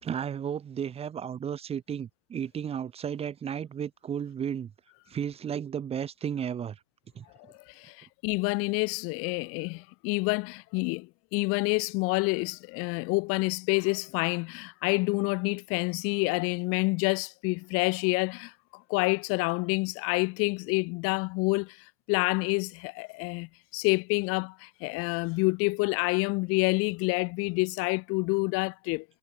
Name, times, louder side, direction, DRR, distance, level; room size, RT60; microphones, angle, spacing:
voice 1, 0.0-4.7 5.1-6.8 7.1-7.2, right 8 dB, 15° right, 3.2 m, -33 dB
voice 2, 7.7-21.8 22.1-29.0, left 27 dB, 35° left, 5.0 m, -28 dB
supercardioid pair, 175°, 37 cm